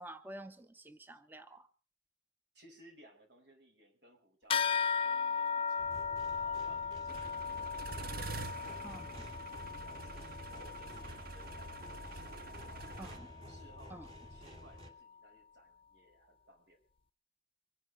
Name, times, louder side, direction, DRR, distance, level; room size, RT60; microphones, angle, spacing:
voice 1, 0.0-1.7 8.8-9.1 13.0-13.3 13.9-14.1, right 1 dB, 10° right, 10 dB, 0.7 m, -49 dB
voice 2, 2.5-6.0 6.4-8.4 8.7-10.2 10.5-13.0 13.4-14.0 14.3-16.8, equal, 75° right, 3 dB, 5.4 m, -62 dB
sound 1, 4.5-14.3, left 6 dB, 30° left, 0.7 m, -38 dB
sound 2, 5.8-14.9, equal, 35° right, 2.7 m, -52 dB
sound 3, 7.1-13.2, right 3 dB, 60° right, 0.8 m, -46 dB
24.5 x 10.0 x 5.1 m, 0.38 s
head